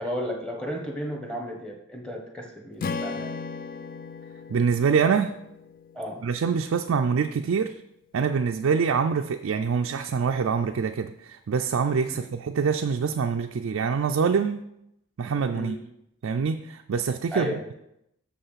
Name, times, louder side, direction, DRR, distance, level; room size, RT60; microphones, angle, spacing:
voice 1, 0.0-3.4 5.9-6.3 12.1-12.2 15.5-15.8 17.3-17.7, equal, 5° left, 0 dB, 1.2 m, -33 dB
Strum, 2.8-7.1, left 4 dB, 40° left, 0.3 m, -37 dB
voice 2, 4.5-5.3 6.2-7.7 8.1-14.6 15.2-15.8 16.2-17.5, right 6 dB, 65° right, 5 dB, 0.4 m, -25 dB
6.7 x 5.5 x 5.7 m, 0.80 s
head